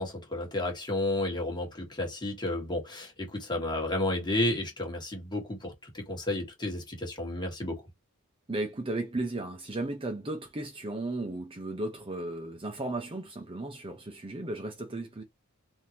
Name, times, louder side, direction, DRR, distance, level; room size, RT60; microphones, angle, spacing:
voice 1, 0.0-7.8, left 1 dB, 20° left, 1.4 m, -32 dB
voice 2, 8.5-15.2, right 2 dB, 25° right, 0.6 m, -35 dB
3.7 x 2.7 x 2.8 m
head